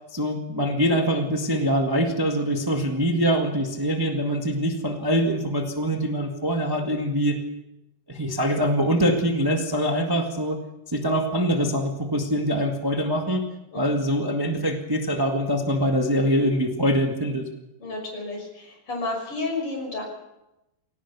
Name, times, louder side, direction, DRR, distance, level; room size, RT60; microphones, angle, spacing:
voice 1, 0.1-7.4 8.1-10.6 10.9-13.4 13.7-17.4, equal, 15° right, 2 dB, 0.7 m, -24 dB
voice 2, 13.7-14.1 17.8-20.0, left 3 dB, 40° left, 1 dB, 6.9 m, -31 dB
22.0 x 18.0 x 6.9 m, 0.94 s
omnidirectional pair, 3.8 m